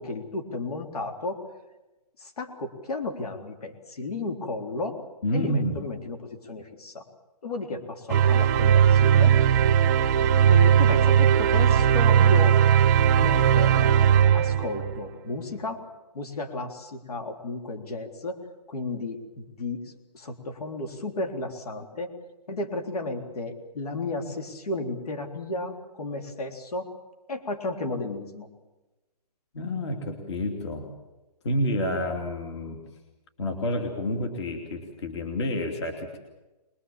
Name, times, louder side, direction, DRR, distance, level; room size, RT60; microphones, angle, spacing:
voice 1, 0.0-1.4 2.2-5.0 5.3-7.0 7.4-9.3 10.5-12.5 13.2-15.8 16.1-18.4 18.7-19.8 20.1-22.1 22.5-26.9 27.3-28.5, left 2 dB, 65° left, 5 dB, 3.7 m, -33 dB
voice 2, 5.2-5.8 29.5-30.9 31.4-32.8 33.4-36.2, left 1 dB, 40° left, 4 dB, 2.8 m, -29 dB
sound 1, 8.1-15.1, right 9 dB, 25° right, 0.9 m, -19 dB
24.0 x 21.5 x 7.4 m, 1.1 s
hypercardioid pair, 170°, 21 cm